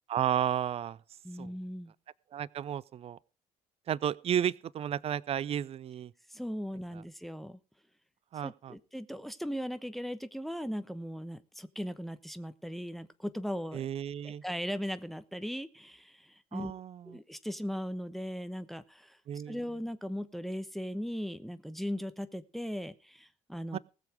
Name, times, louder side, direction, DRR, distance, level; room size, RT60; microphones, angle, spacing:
voice 1, 0.1-1.0 1.4-1.5 2.3-3.2 3.9-6.1 6.9-7.0 8.3-8.7 13.7-14.4 16.5-17.2 19.3-19.6 23.7-23.8, right 9 dB, 35° right, 0.6 m, -33 dB
voice 2, 1.2-1.9 6.3-7.6 8.4-13.9 14.2-16.7 17.0-19.2 19.5-23.8, equal, ahead, 1.0 m, -38 dB
19.5 x 7.0 x 5.0 m
figure-of-eight pair, 55°, 17 cm